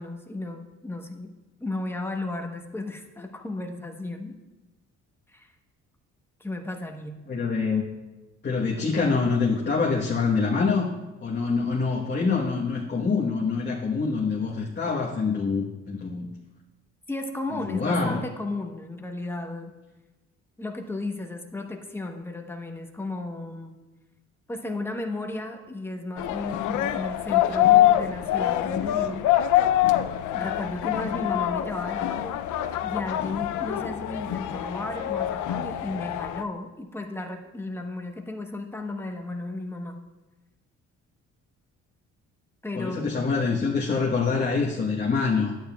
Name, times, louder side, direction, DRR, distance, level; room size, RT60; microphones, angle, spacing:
voice 1, 0.0-1.3 1.6-4.4 5.3-5.5 6.4-7.2 17.1-19.8 20.6-23.7 24.5-29.3 30.3-32.4 32.8-40.0 42.6-43.1, left 2 dB, 10° left, 3 dB, 1.0 m, -34 dB
voice 2, 7.3-7.8 8.4-10.9 11.2-16.3 17.6-18.2 42.7-45.5, left 4 dB, 35° left, -3 dB, 1.2 m, -25 dB
sound 1, 26.2-36.4, left 13 dB, 80° left, 0.5 m, -25 dB
11.5 x 9.1 x 2.3 m, 1.1 s
cardioid pair, 90°, 30 cm